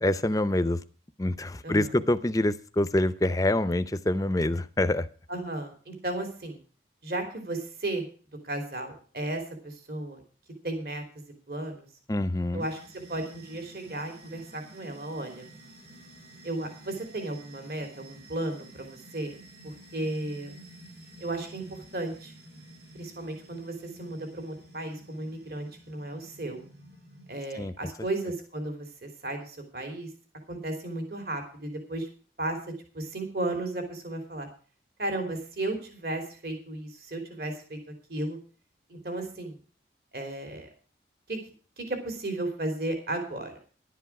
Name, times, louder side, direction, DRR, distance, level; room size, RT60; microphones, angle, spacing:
voice 1, 0.0-0.8 1.2-5.1 12.1-12.7 27.5-27.7, left 1 dB, 20° left, 13 dB, 0.6 m, -26 dB
voice 2, 5.3-6.6 7.0-8.1 8.4-10.2 10.6-11.0 11.5-11.9 12.5-12.8 13.1-15.4 16.4-19.4 19.6-20.6 21.2-22.3 22.9-26.6 27.3-30.1 30.5-32.1 32.4-32.6 32.9-34.5 35.0-37.8 38.1-38.4 38.9-39.6 40.1-40.7 41.3-41.4 41.8-43.5, right 2 dB, 55° right, 4 dB, 3.2 m, -34 dB
sound 1, 12.6-27.4, right 1 dB, 70° right, 5.3 m, -51 dB
11.5 x 10.0 x 5.9 m, 0.40 s
head